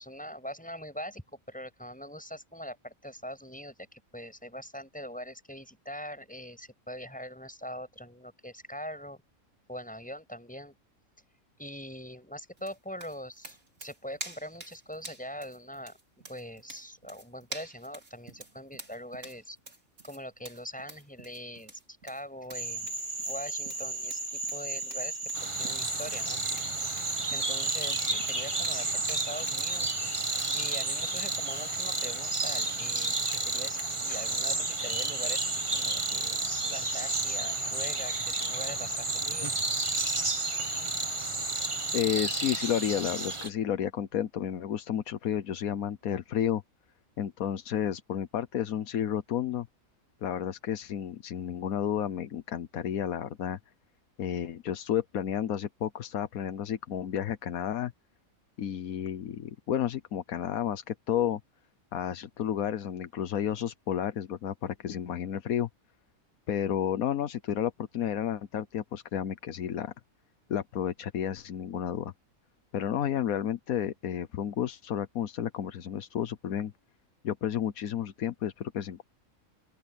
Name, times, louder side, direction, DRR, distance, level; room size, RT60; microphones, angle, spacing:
voice 1, 0.0-9.2 9.7-10.7 11.6-16.0 16.3-19.6 20.0-23.0 23.2-26.4 26.8-30.0 30.5-39.6, equal, 5° left, 6.8 m, -42 dB
sound 1, 12.6-29.7, right 2 dB, 60° right, 4.8 m, -48 dB
Frog, 22.5-42.0, right 2 dB, 40° right, 3.1 m, -35 dB
sound 2, 25.3-43.5, right 3 dB, 20° right, 1.3 m, -33 dB
voice 2, 41.9-46.6 47.2-49.7 50.2-53.6 54.2-57.9 58.6-61.4 61.9-65.7 66.5-69.9 70.5-72.1 72.7-76.7 77.2-79.0, left 9 dB, 80° left, 1.4 m, -31 dB
open air
omnidirectional pair, 1.5 m